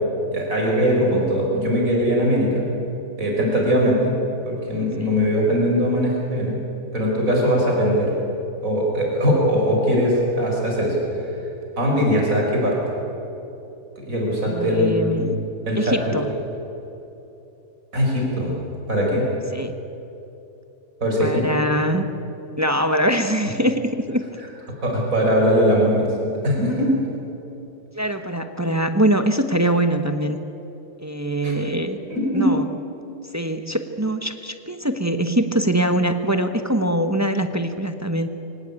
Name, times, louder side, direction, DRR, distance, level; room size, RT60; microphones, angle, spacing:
voice 1, 0.3-2.7 3.2-4.2 4.5-6.6 6.9-8.1 8.6-11.0 11.8-12.8 14.0-16.0 17.9-18.6 18.9-19.3 21.0-21.5 24.8-26.1 26.4-26.9 31.4-31.5 32.1-32.5, equal, 50° right, -1 dB, 5.4 m, -20 dB
voice 2, 14.4-15.4 15.7-16.3 19.5-19.7 21.2-22.1 22.6-24.2 27.9-30.4 31.0-32.0 32.3-32.7 33.3-38.3, right 1 dB, 15° right, 7 dB, 0.7 m, -23 dB
23.5 x 18.5 x 8.7 m, 3.0 s
omnidirectional pair, 1.9 m